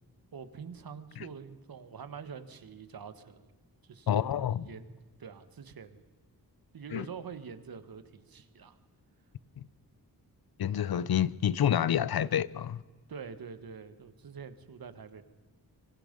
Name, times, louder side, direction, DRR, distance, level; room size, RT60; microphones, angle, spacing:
voice 1, 0.3-3.5 3.8-6.0 6.7-8.8 12.1-12.2 13.1-15.2, right 6 dB, 65° right, 1.6 m, -46 dB
voice 2, 4.1-4.7 6.9-7.1 9.6-9.7 10.6-12.8, left 9 dB, 70° left, 0.7 m, -28 dB
26.0 x 24.0 x 5.4 m
wide cardioid pair, 105°, 38 cm